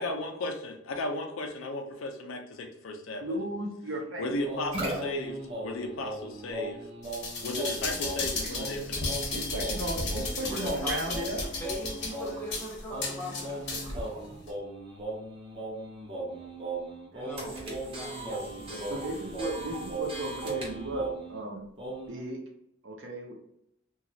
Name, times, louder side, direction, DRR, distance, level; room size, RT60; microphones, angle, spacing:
voice 1, 0.0-3.4 4.2-6.8 7.4-9.3, left 1 dB, 80° left, 4 dB, 0.5 m, -35 dB
voice 2, 3.2-4.3 8.4-8.6 9.3-11.5 17.1-17.2 18.9-21.7 22.1-22.5 22.8-23.3, right 1 dB, 65° right, 0 dB, 0.7 m, -35 dB
sound 1, 4.4-21.4 21.8-22.2, right 1 dB, 25° right, 0.7 m, -38 dB
sound 2, 7.0-14.0 14.5-14.6, left 3 dB, 55° left, 0.9 m, -34 dB
voice 3, 10.5-14.1 17.1-19.3, equal, 10° left, -3 dB, 0.7 m, -41 dB
2.9 x 2.3 x 2.7 m, 0.77 s
head